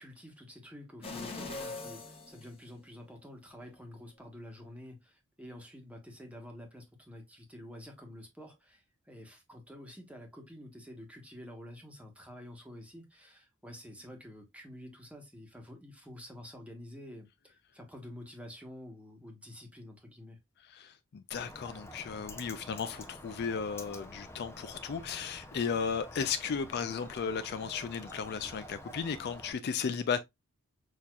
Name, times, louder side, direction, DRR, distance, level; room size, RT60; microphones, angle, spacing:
voice 1, 0.0-20.4 22.5-22.7 28.4-28.5, left 1 dB, 5° right, 1.2 m, -49 dB
sound 1, 1.0-3.2 3.6-3.7, left 3 dB, 25° left, 1.2 m, -42 dB
voice 2, 20.7-30.2, left 6 dB, 50° left, 0.4 m, -35 dB
Bird, 21.3-29.5, left 1 dB, 10° left, 0.6 m, -49 dB
6.3 x 2.8 x 2.4 m
head